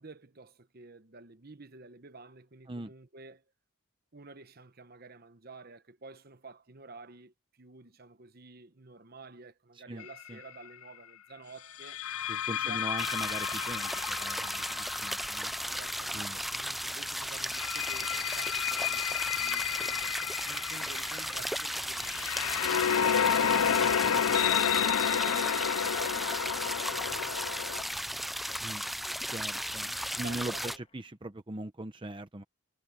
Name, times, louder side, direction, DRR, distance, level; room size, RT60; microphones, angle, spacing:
voice 1, 0.0-3.4 4.1-12.0 12.5-12.8 15.6-29.2 30.1-30.8, right 3 dB, 45° right, 1.0 m, -51 dB
voice 2, 9.7-10.4 12.3-15.5 16.1-16.4 28.6-28.8 29.3-32.4, right 1 dB, 25° right, 0.7 m, -41 dB
sound 1, 10.0-10.3 11.8-16.5 17.3-27.8, left 8 dB, 85° left, 0.6 m, -31 dB
sound 2, 13.0-30.8, equal, ahead, 0.4 m, -35 dB
Boiling, 20.5-31.2, left 4 dB, 25° left, 2.4 m, -62 dB
head